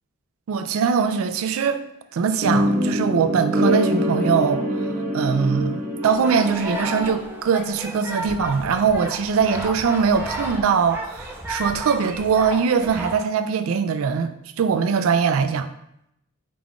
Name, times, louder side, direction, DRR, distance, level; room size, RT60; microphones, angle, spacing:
voice 1, 0.5-1.8 2.1-15.7, right 6 dB, 80° right, 0.3 m, -22 dB
sound 1, 2.4-7.5, equal, 40° right, 0.8 m, -24 dB
sound 2, 6.0-13.2, right 1 dB, 10° right, 0.4 m, -33 dB
5.0 x 2.3 x 3.6 m
head